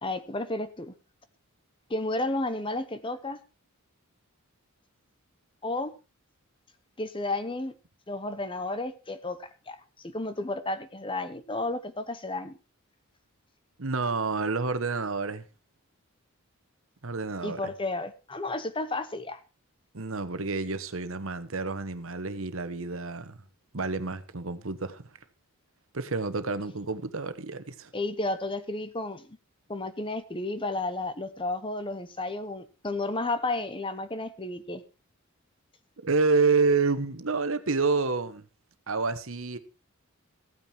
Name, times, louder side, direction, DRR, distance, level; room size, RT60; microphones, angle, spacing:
voice 1, 0.0-0.9 1.9-3.4 5.6-5.9 7.0-7.8 8.1-9.8 10.0-12.6 17.4-19.4 27.9-29.4 29.7-34.8, left 2 dB, 25° left, 0.9 m, -32 dB
voice 2, 13.8-15.4 17.0-17.7 19.9-23.4 23.7-25.1 25.9-27.9 36.0-38.5 38.9-39.6, right 4 dB, 65° right, 1.2 m, -28 dB
15.0 x 9.1 x 4.4 m
head